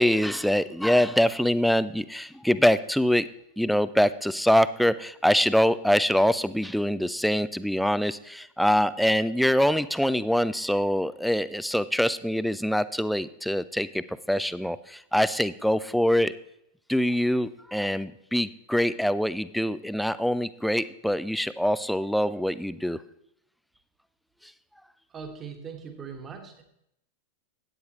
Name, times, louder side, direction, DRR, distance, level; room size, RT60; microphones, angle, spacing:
voice 1, 0.0-3.3 3.6-16.3 16.9-23.0, equal, ahead, 15 dB, 0.4 m, -24 dB
voice 2, 25.1-26.6, right 6 dB, 25° right, 4 dB, 1.7 m, -40 dB
13.0 x 9.4 x 3.1 m, 0.77 s
figure-of-eight pair, 90°, 0 cm